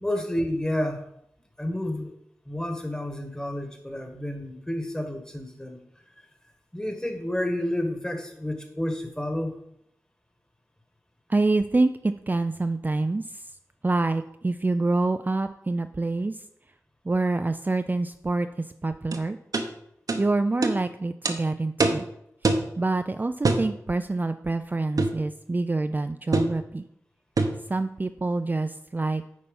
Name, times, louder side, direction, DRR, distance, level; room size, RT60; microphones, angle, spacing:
voice 1, 0.0-1.0 1.6-2.1 2.4-5.8 6.7-9.6, left 1 dB, 15° left, 5 dB, 1.6 m, -30 dB
voice 2, 11.3-13.5 13.8-16.4 17.0-19.4 20.1-22.1 22.8-26.8 27.7-29.2, right 2 dB, 30° right, 8 dB, 0.4 m, -26 dB
sound 1, 19.1-19.2 19.5-19.7 20.1-20.2 20.6-20.8 21.3-21.4 21.8-22.0 22.4-22.7 23.4-23.7 25.0-25.2 26.3-26.6 27.4-27.6, right 3 dB, 70° right, 0.9 m, -23 dB
9.6 x 4.2 x 5.4 m, 0.75 s
cardioid pair, 50°, 6 cm